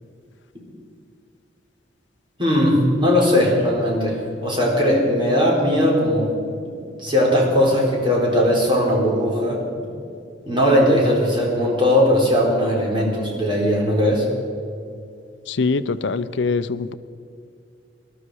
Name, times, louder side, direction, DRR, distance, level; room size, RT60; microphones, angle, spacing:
voice 1, 2.4-6.3 7.0-9.6 10.5-14.3, equal, 25° right, -3 dB, 3.9 m, -19 dB
voice 2, 15.5-16.9, left 4 dB, 70° left, 13 dB, 0.6 m, -23 dB
20.0 x 12.5 x 4.8 m, 2.5 s
head